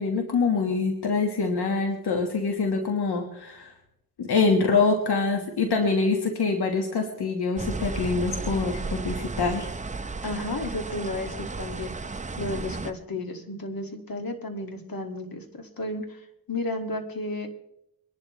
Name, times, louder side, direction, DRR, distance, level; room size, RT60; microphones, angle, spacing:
voice 1, 0.0-3.7 4.2-9.7, left 4 dB, 85° left, 3 dB, 1.6 m, -25 dB
sound 1, 7.6-12.9, right 3 dB, 20° right, 0.6 m, -33 dB
voice 2, 10.2-11.9 12.4-17.5, left 2 dB, 65° left, 4 dB, 2.3 m, -33 dB
24.0 x 11.5 x 3.2 m, 0.82 s
cardioid pair, 80°, 38 cm